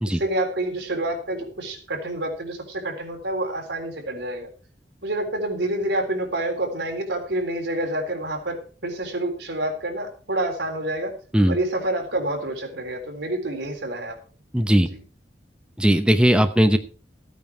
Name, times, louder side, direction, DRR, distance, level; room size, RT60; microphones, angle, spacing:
voice 1, 0.1-4.5 5.0-11.1 11.5-14.1, right 1 dB, 85° right, 2 dB, 3.7 m, -28 dB
voice 2, 14.5-14.9 15.8-16.8, equal, 5° right, 8 dB, 0.8 m, -18 dB
14.5 x 9.2 x 4.5 m, 0.38 s
head